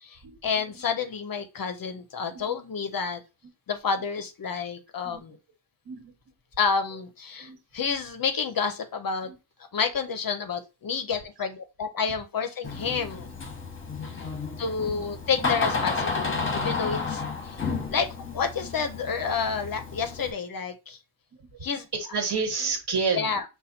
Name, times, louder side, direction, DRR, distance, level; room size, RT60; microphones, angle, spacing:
voice 1, 0.0-3.2 3.7-5.4 6.6-9.3 9.7-13.3 14.6-17.6 17.9-18.1 18.3-21.0 21.6-21.9 23.1-23.4, left 5 dB, 45° left, 8 dB, 0.6 m, -29 dB
Door, 12.6-20.3, left 4 dB, 25° left, 0.9 m, -31 dB
voice 2, 21.9-23.3, right 5 dB, 55° right, 4 dB, 1.5 m, -29 dB
5.4 x 2.3 x 4.2 m, 0.28 s
wide cardioid pair, 165°, 48 cm